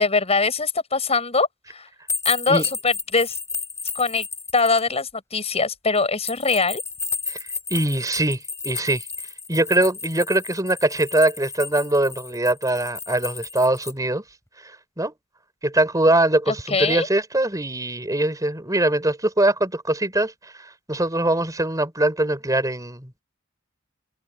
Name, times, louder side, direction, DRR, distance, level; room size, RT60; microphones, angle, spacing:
voice 1, 0.0-1.9 2.3-3.4 3.9-4.3 4.5-6.8 16.5-17.1, left 4 dB, 30° left, 7.1 m, -22 dB
sound 1, 2.1-4.8 6.2-13.9, left 4 dB, 15° left, 7.2 m, -32 dB
voice 2, 7.3-9.1 9.5-14.2 14.6-15.1 15.6-23.2, right 1 dB, 15° right, 5.6 m, -22 dB
head